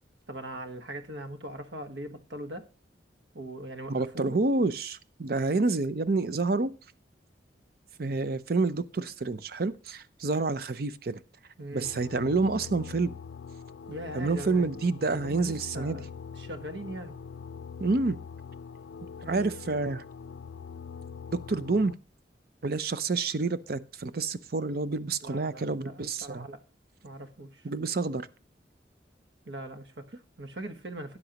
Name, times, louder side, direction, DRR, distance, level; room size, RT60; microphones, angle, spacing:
voice 1, 0.3-2.7 3.3-4.4 11.6-11.9 13.9-14.8 15.1-16.1 16.4-17.1 19.2-19.5 25.2-26.6 27.0-27.7 29.4-31.2, right 1 dB, 75° right, 1.3 m, -40 dB
voice 2, 3.9-6.7 8.0-11.2 11.7-13.2 14.1-16.0 17.8-18.2 19.2-20.0 21.3-21.9 22.6-26.5 27.6-28.3, right 3 dB, 55° right, 0.6 m, -28 dB
sound 1, 11.8-21.9, left 6 dB, 85° left, 0.4 m, -43 dB
13.0 x 9.5 x 2.9 m
head